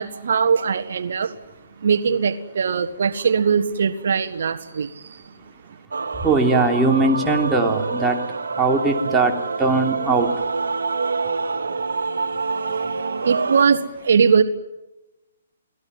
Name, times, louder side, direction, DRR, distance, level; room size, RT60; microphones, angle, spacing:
voice 1, 0.0-1.3 1.8-5.2 13.2-14.4, right 6 dB, 65° right, 9 dB, 1.5 m, -20 dB
Male singing / Female singing / Musical instrument, 5.9-13.6, right 4 dB, 85° right, 2.0 m, -26 dB
voice 2, 6.2-8.2 8.5-10.3 12.8-12.9, right 3 dB, 10° right, 1 dB, 3.2 m, -20 dB
29.0 x 19.5 x 9.6 m, 1.1 s
hypercardioid pair, 150°, 0 cm